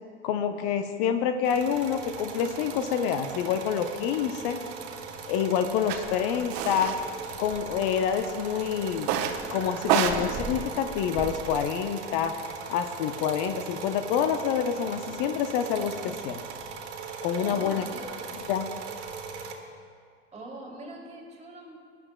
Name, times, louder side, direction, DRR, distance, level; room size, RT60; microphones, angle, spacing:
voice 1, 0.2-4.6 5.3-6.9 7.4-9.1 9.5-12.3 12.7-16.4 17.2-17.9 18.5-18.7, left 8 dB, 50° left, 8 dB, 0.8 m, -27 dB
sound 1, 1.4-19.5, right 5 dB, 70° right, 1.4 m, -39 dB
sound 2, 5.9-6.0 6.5-7.0 7.3-8.0 9.0-9.4 9.8-11.6, right 8 dB, 50° right, 1.1 m, -28 dB
voice 2, 17.4-18.4 20.3-21.7, right 2 dB, 20° right, 0 dB, 2.9 m, -42 dB
20.5 x 11.5 x 2.2 m, 2.1 s
figure-of-eight pair, 80°, 34 cm